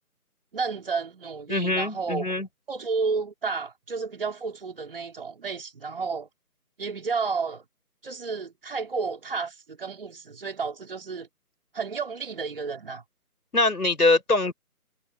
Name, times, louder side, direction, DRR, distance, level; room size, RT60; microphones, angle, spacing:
voice 1, 0.5-2.2 2.7-6.3 6.8-7.6 8.0-11.3 11.7-13.0, right 4 dB, 35° right, 4.3 m, -31 dB
voice 2, 1.5-2.5 13.5-14.5, left 2 dB, 75° left, 6.6 m, -23 dB
figure-of-eight pair, 160°, 45 cm